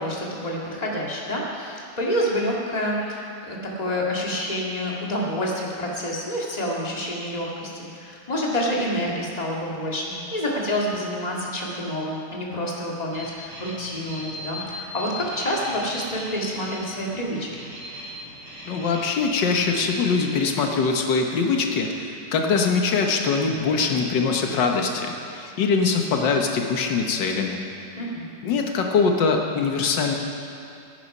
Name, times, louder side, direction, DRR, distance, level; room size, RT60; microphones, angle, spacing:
voice 1, 0.0-17.7 27.9-28.3, equal, 20° left, -3 dB, 2.0 m, -28 dB
sound 1, 13.1-20.3, equal, 65° right, 3.7 m, -38 dB
voice 2, 18.7-27.7 28.4-30.2, left 4 dB, 85° left, 2 dB, 1.8 m, -23 dB
17.0 x 9.7 x 5.5 m, 2.7 s
omnidirectional pair, 1.9 m